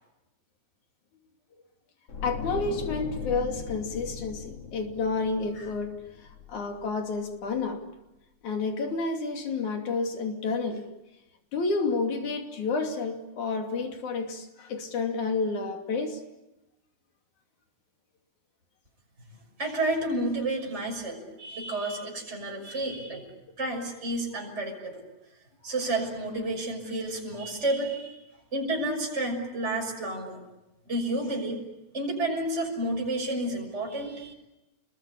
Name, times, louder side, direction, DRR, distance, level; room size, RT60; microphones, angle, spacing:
sound 1, 2.1-7.2 7.5-7.7, left 6 dB, 55° left, 4.0 m, -39 dB
voice 1, 2.2-6.0 6.5-7.8 8.4-10.9 11.5-16.2, left 4 dB, 85° left, 3 dB, 4.3 m, -30 dB
voice 2, 19.6-23.2 23.6-25.0 25.6-28.2 28.5-30.4 30.9-31.6 31.9-34.3, right 1 dB, 20° right, 0 dB, 6.5 m, -30 dB
29.5 x 22.0 x 8.8 m, 0.97 s
omnidirectional pair, 3.3 m